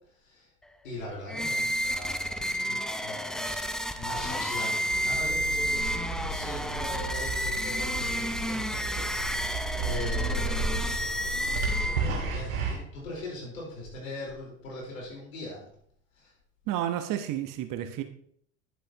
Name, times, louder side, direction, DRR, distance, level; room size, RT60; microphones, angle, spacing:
voice 1, 0.8-3.7 3.9-5.9 6.3-15.6 16.2-16.3, left 1 dB, 85° left, -3 dB, 4.4 m, -41 dB
sound 1, 1.3-12.3, equal, ahead, 0.5 m, -31 dB
sound 2, 4.9-12.7, right 3 dB, 85° right, 2.0 m, -33 dB
voice 2, 16.7-18.0, right 11 dB, 55° right, 8 dB, 1.1 m, -31 dB
10.5 x 8.0 x 2.9 m, 0.64 s
hypercardioid pair, 75°, 39 cm